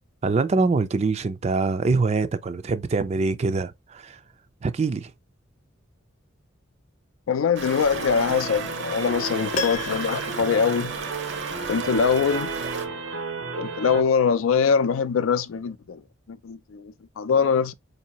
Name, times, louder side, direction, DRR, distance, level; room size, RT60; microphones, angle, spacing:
voice 1, 0.2-4.2 4.6-5.1, right 3 dB, 30° right, 0.3 m, -24 dB
voice 2, 7.3-11.0 11.7-12.5 13.6-16.0 16.3-17.7, left 6 dB, 90° left, 0.4 m, -23 dB
Stream, 7.6-12.9, right 5 dB, 60° right, 0.7 m, -34 dB
sound 1, 7.9-14.0, right 3 dB, 90° right, 0.9 m, -33 dB
Piano, 9.5-11.6 11.9-12.0, left 3 dB, 35° left, 0.5 m, -34 dB
4.6 x 2.7 x 2.9 m
head